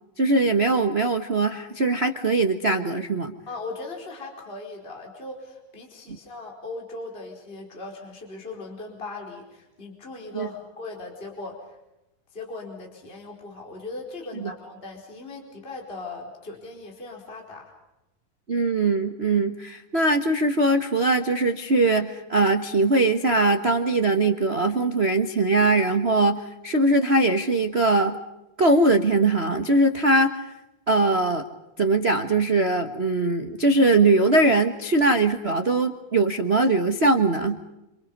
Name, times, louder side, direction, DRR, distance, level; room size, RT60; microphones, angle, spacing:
voice 1, 0.2-3.3 6.1-6.2 10.3-10.5 14.4-14.5 18.5-28.2 28.6-30.5 30.9-31.4 31.8-37.6, right 2 dB, 80° right, 6 dB, 0.5 m, -21 dB
voice 2, 3.5-11.8 12.3-17.7, left 3 dB, 15° left, 0 dB, 4.5 m, -38 dB
28.5 x 27.5 x 5.4 m, 0.94 s
omnidirectional pair, 3.6 m